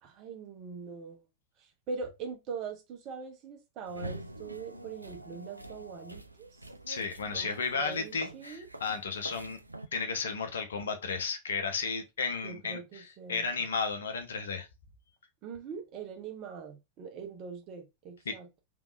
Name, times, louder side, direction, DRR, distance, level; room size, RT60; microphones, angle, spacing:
voice 1, 0.0-1.2 1.6-6.5 7.3-7.5 7.8-8.7 12.4-13.5 15.4-18.5, right 5 dB, 40° right, 1.0 m, -42 dB
sound 1, 3.9-9.9, right 1 dB, 85° right, 0.3 m, -45 dB
voice 2, 6.9-9.6 9.9-14.7 18.2-18.4, left 5 dB, 65° left, 0.8 m, -33 dB
3.6 x 3.1 x 2.5 m
figure-of-eight pair, 90°, 0 cm